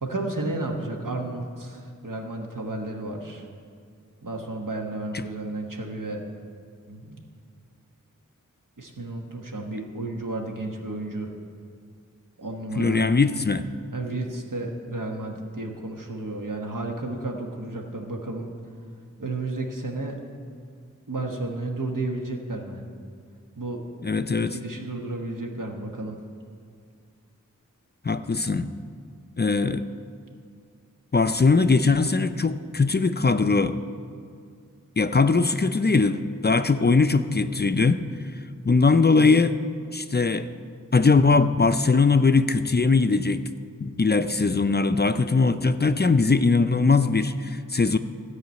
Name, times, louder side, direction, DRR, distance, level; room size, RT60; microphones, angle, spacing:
voice 1, 0.0-3.4 4.2-6.2 6.9-7.2 8.8-11.3 12.4-13.0 13.9-18.5 19.2-20.2 21.1-22.8 23.6-23.8 24.4-26.2, right 2 dB, 75° right, 1 dB, 1.3 m, -32 dB
voice 2, 12.8-13.7 24.0-24.6 28.0-28.7 29.4-29.8 31.1-33.8 35.0-38.0 38.7-39.6 39.9-40.5 40.9-43.4 43.8-48.0, left 4 dB, 35° left, 10 dB, 0.4 m, -20 dB
13.5 x 4.9 x 8.2 m, 2.3 s
wide cardioid pair, 45°, 32 cm